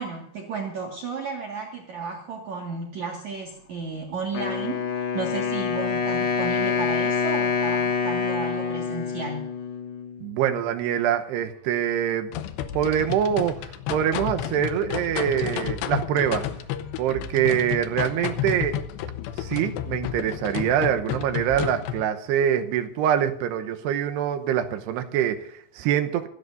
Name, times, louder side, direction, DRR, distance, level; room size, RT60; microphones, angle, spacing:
voice 1, 0.0-9.5, right 5 dB, 50° right, 0 dB, 2.5 m, -33 dB
Wind instrument woodwind instrument, 4.3-10.3, left 6 dB, 55° left, 2.6 m, -26 dB
voice 2, 10.2-12.3 12.7-13.6 13.9-16.5 17.0-18.8 19.4-26.3, right 9 dB, 75° right, 7 dB, 2.8 m, -24 dB
sound 1, 12.3-22.0, left 10 dB, 75° left, 2.9 m, -31 dB
26.0 x 13.5 x 2.6 m, 0.66 s
omnidirectional pair, 5.4 m